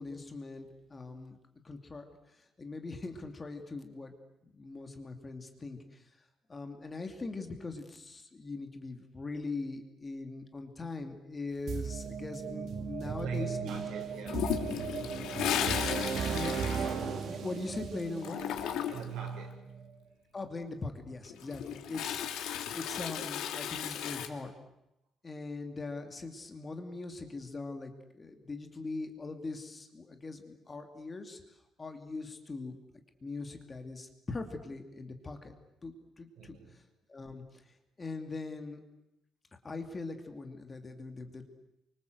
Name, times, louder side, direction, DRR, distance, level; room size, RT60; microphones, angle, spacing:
voice 1, 0.0-1.4 1.6-4.1 4.4-6.0 6.5-13.8 16.2-18.4 20.3-24.5 25.2-31.4 31.8-32.8 33.2-35.5 35.8-36.6 37.1-37.4 38.0-38.8 39.6-41.4, left 3 dB, 20° left, 5 dB, 2.4 m, -41 dB
sound 1, 11.7-19.5, right 6 dB, 50° right, 2.1 m, -37 dB
voice 2, 13.0-15.4 18.9-20.0 36.4-36.8, right 6 dB, 85° right, 3 dB, 6.0 m, -42 dB
Toilet flush, 14.3-17.7 18.0-19.2 21.2-24.3, left 10 dB, 90° left, 2.5 m, -35 dB
28.5 x 25.0 x 7.9 m, 0.86 s
cardioid pair, 170°, 0 cm